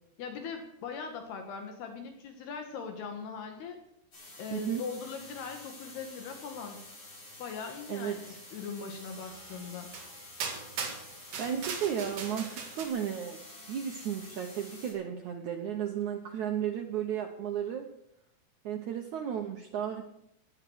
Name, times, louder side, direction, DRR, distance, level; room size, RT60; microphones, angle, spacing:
voice 1, 0.2-3.8 4.4-6.8 7.4-9.9, left 5 dB, 70° left, 4 dB, 3.4 m, -40 dB
sound 1, 4.1-14.9, left 1 dB, 30° left, 5.9 m, -49 dB
voice 2, 4.5-4.8 7.9-8.4 11.4-13.4 13.7-17.9 18.6-20.0, right 9 dB, 80° right, 3 dB, 1.7 m, -34 dB
sound 2, 9.2-9.3 9.9-10.1 10.4-12.9, right 5 dB, 55° right, 3.4 m, -38 dB
18.0 x 10.0 x 6.3 m, 0.78 s
omnidirectional pair, 5.0 m